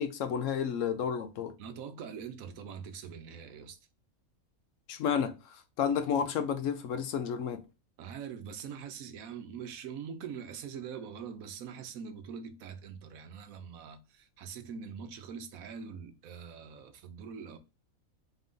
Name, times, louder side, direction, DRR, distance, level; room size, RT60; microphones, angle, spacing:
voice 1, 0.0-1.5 4.9-7.6, left 7 dB, 70° left, 0.9 m, -31 dB
voice 2, 1.6-3.8 8.0-17.6, right 7 dB, 80° right, 1.1 m, -43 dB
4.0 x 2.6 x 3.6 m
omnidirectional pair, 1.5 m